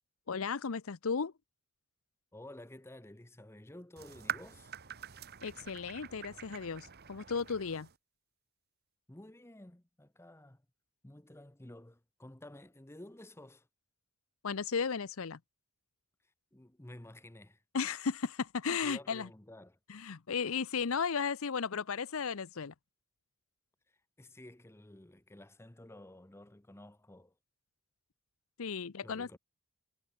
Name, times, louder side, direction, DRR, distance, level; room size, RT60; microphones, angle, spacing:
voice 1, 0.3-1.3 5.4-7.9 14.4-15.4 17.7-19.3 19.9-22.7 28.6-29.4, left 5 dB, 75° left, 0.7 m, -35 dB
voice 2, 2.3-4.7 9.1-10.6 11.0-13.7 16.5-17.6 18.8-19.8 24.2-27.3 29.0-29.4, left 1 dB, 10° left, 0.9 m, -52 dB
sound 1, 4.0-8.0, right 9 dB, 45° right, 1.3 m, -45 dB
head